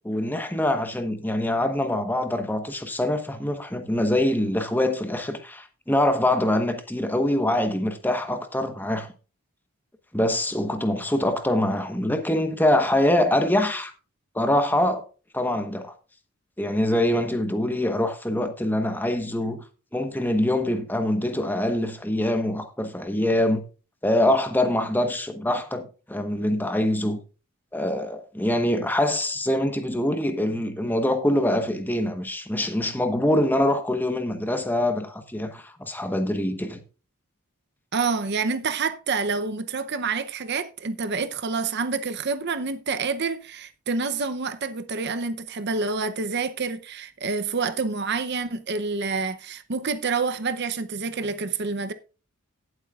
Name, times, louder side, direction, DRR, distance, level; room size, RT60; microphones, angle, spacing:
voice 1, 0.0-9.1 10.1-13.9 14.3-15.0 15.3-15.9 16.6-19.6 19.9-23.6 24.0-27.2 27.7-36.8, left 1 dB, 10° left, 1.1 m, -24 dB
voice 2, 37.9-51.9, right 4 dB, 50° right, 0.7 m, -28 dB
18.0 x 8.0 x 2.4 m
head